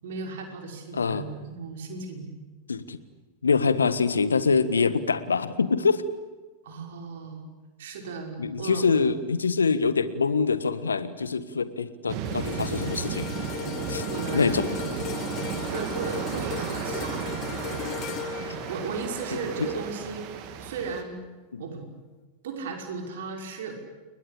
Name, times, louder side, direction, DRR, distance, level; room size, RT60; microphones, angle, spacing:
voice 1, 0.0-2.3 6.6-7.5 7.8-9.0 14.0-14.7 15.7-17.5 18.3-20.3 20.6-21.2 21.6-21.9 22.4-23.8, right 4 dB, 60° right, 4 dB, 5.9 m, -36 dB
voice 2, 0.9-1.2 2.7-3.0 3.4-6.0 8.4-13.3 13.9-14.0 14.3-14.7 21.5-21.6, left 5 dB, 75° left, 14 dB, 1.6 m, -24 dB
sound 1, 12.1-21.0, right 7 dB, 40° right, 3.1 m, -34 dB
sound 2, 12.3-20.6 21.0-21.3, left 12 dB, 40° left, 1.4 m, -37 dB
30.0 x 22.0 x 8.6 m, 1.3 s
figure-of-eight pair, 90°, 0 cm